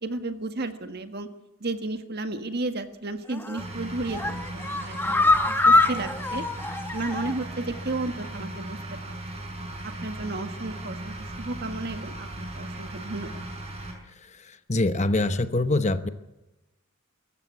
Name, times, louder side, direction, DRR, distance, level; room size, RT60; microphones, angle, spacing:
voice 1, 0.0-1.3 1.6-6.5 6.9-8.8 9.1-9.2 9.8-13.4, right 2 dB, 50° right, 8 dB, 1.7 m, -33 dB
sound 1, 3.3-3.7 4.1-7.5 7.8-7.9 8.2-8.3, left 2 dB, 10° left, 1.3 m, -24 dB
sound 2, 3.6-13.9, right 1 dB, 30° right, 6.0 m, -37 dB
voice 2, 14.3-16.1, left 2 dB, 30° left, 10 dB, 1.0 m, -25 dB
24.0 x 14.5 x 8.4 m, 1.0 s
head